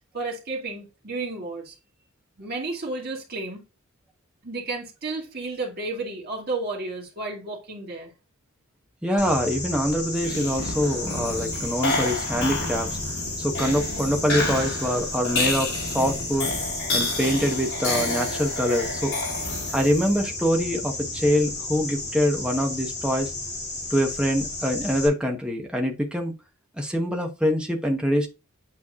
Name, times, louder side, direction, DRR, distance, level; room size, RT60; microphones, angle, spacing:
voice 1, 0.1-1.7 2.4-3.6 4.4-8.1, right 3 dB, 45° right, 2.3 m, -32 dB
voice 2, 9.0-13.0 13.4-16.5 16.9-19.1 19.7-23.3 23.9-26.3 26.8-28.3, equal, 5° right, 1.1 m, -24 dB
sound 1, 9.2-25.1, left 2 dB, 35° left, 2.8 m, -33 dB
sound 2, 10.2-20.1, left 2 dB, 65° left, 3.9 m, -30 dB
8.5 x 4.6 x 2.5 m
head